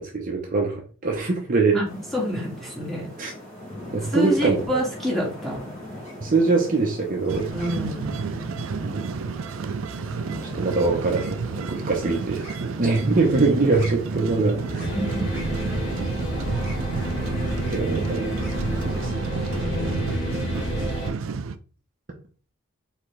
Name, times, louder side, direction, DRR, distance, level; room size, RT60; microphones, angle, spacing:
voice 1, 0.0-1.8 3.2-3.3 3.9-4.8 6.2-7.5 8.8-9.2 10.5-14.9 17.7-18.5 18.8-19.3, right 3 dB, 40° right, 1 dB, 0.7 m, -23 dB
voice 2, 1.7-3.1 4.1-5.7 7.5-8.2 14.9-15.2 19.5-21.1, equal, ahead, -4 dB, 1.6 m, -28 dB
sound 1, 1.8-19.1, left 1 dB, 35° left, 1.9 m, -40 dB
sound 2, 7.3-21.6, right 5 dB, 80° right, 0.4 m, -31 dB
sound 3, 14.8-21.1, equal, 55° left, 1.5 m, -29 dB
4.4 x 3.4 x 3.2 m, 0.39 s
head